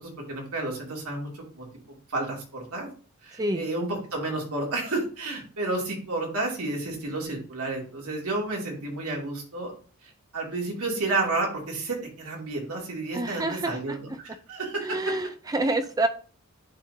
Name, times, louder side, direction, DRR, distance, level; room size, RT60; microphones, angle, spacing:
voice 1, 0.0-1.7 2.1-2.9 3.2-9.7 10.0-15.0, right 2 dB, 75° right, -1 dB, 2.4 m, -31 dB
voice 2, 13.1-14.0 14.8-16.1, right 2 dB, 15° right, 8 dB, 0.4 m, -27 dB
10.5 x 3.7 x 2.7 m, 0.40 s
head